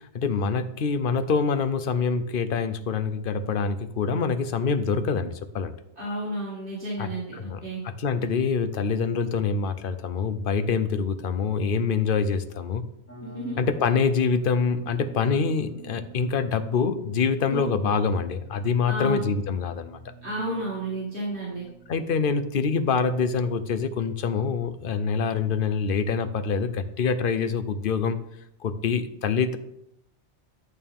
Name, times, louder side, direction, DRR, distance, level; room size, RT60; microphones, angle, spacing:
voice 1, 0.1-5.7 7.0-12.8 13.6-20.0 21.9-28.2 28.6-29.6, left 5 dB, 55° left, 10 dB, 0.8 m, -25 dB
voice 2, 6.0-7.8 13.2-13.6 17.5-17.7 18.9-19.2 20.2-21.6, right 1 dB, 50° right, -6 dB, 2.4 m, -31 dB
sound 1, 13.1-24.0, right 4 dB, 15° left, 1.2 m, -46 dB
11.0 x 6.7 x 3.7 m, 0.79 s
omnidirectional pair, 1.2 m